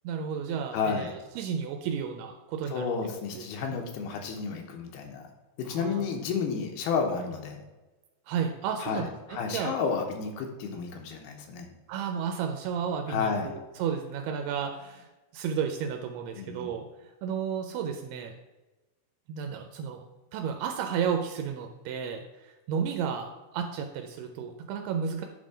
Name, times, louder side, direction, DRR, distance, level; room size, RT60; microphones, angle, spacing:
voice 1, 0.0-2.9 3.3-3.8 5.7-6.1 8.3-9.8 11.9-15.1 15.3-16.9 17.2-18.3 19.3-20.0 20.3-22.2 22.7-25.3, right 7 dB, 85° right, 4 dB, 2.6 m, -32 dB
voice 2, 0.7-1.1 2.7-5.2 5.6-7.6 8.8-11.7 13.1-13.5 16.4-16.7, left 5 dB, 80° left, 3 dB, 2.8 m, -31 dB
9.8 x 3.8 x 5.0 m, 1.1 s
omnidirectional pair, 4.6 m